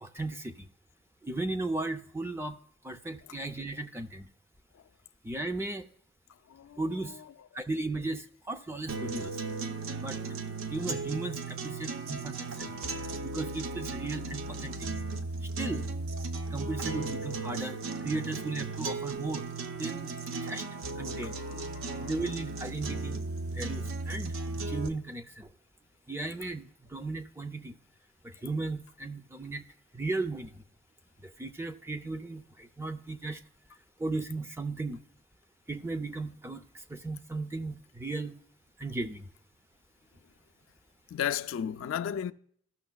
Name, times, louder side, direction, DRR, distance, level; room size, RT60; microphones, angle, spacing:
voice 1, 0.0-0.7 1.2-2.6 2.8-4.3 5.2-5.9 6.8-7.2 7.5-9.3 9.9-10.2 10.7-12.7 13.3-14.9 15.6-15.9 16.5-17.8 18.0-19.5 19.8-20.1 20.4-20.6 21.0-21.3 22.0-23.2 23.5-24.3 24.7-25.5 26.1-27.7 28.4-29.6 29.9-30.6 31.4-33.4 34.0-35.0 35.7-36.6 36.9-38.4 38.8-39.3, right 2 dB, 10° right, 0.4 m, -36 dB
voice 2, 6.5-6.8 7.1-7.2 12.7-13.1 21.0-22.1 41.1-42.3, left 9 dB, 75° left, 0.3 m, -36 dB
sound 1, 8.9-24.9, right 3 dB, 85° right, 0.6 m, -36 dB
14.5 x 6.2 x 2.2 m
head